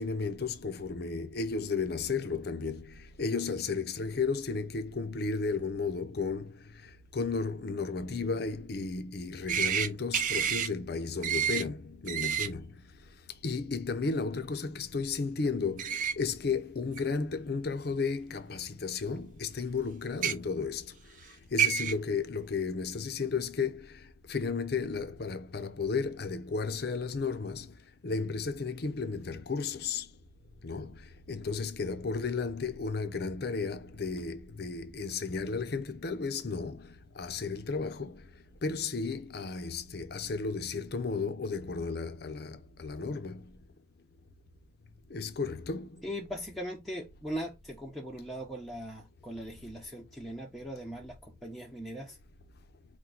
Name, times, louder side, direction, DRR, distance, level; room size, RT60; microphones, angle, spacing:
voice 1, 0.0-13.1 13.4-30.1 30.6-43.6 45.1-46.0, left 4 dB, 60° left, 0.6 m, -34 dB
sound 1, 9.5-9.9 10.1-10.7 11.2-11.6 12.1-12.5 15.8-16.1 17.0-17.1 18.3-18.4 20.1-20.3 21.2-21.3 21.6-21.9, right 9 dB, 45° right, 0.4 m, -28 dB
voice 2, 46.0-52.2, equal, ahead, 0.6 m, -40 dB
4.5 x 2.2 x 3.8 m
head